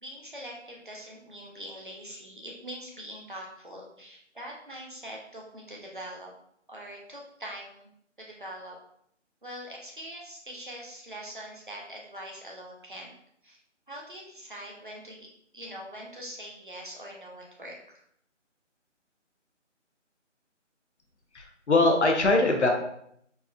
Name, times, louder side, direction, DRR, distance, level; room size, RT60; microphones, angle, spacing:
voice 1, 0.0-6.3 6.7-7.9 8.2-8.8 9.4-13.1 13.4-13.6 13.9-15.3 15.5-18.0, equal, 45° right, -2 dB, 0.6 m, -43 dB
voice 2, 21.3-22.7, left 2 dB, 65° left, 3 dB, 0.7 m, -22 dB
4.1 x 2.3 x 2.3 m, 0.71 s
figure-of-eight pair, 180°, 37 cm